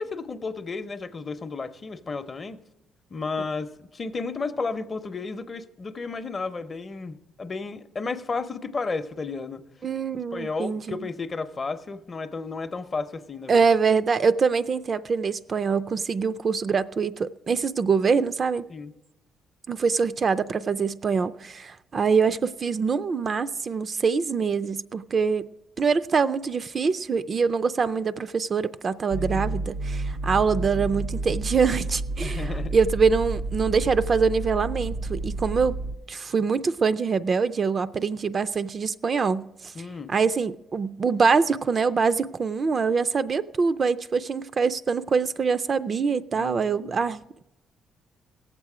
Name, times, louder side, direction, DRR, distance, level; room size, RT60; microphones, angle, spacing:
voice 1, 0.0-2.6 3.1-9.6 10.3-13.6 18.7-18.9 29.3-29.4 30.0-30.2 32.2-32.8 39.7-40.1 46.3-47.0, left 4 dB, 35° left, 0.6 m, -33 dB
voice 2, 9.8-11.0 13.5-18.7 19.7-25.5 25.8-35.8 36.1-39.5 40.1-47.4, right 5 dB, 45° right, 0.3 m, -24 dB
sound 1, 29.1-36.0, right 2 dB, 80° right, 0.7 m, -30 dB
17.5 x 7.4 x 4.9 m
cardioid pair, 90°, 0 cm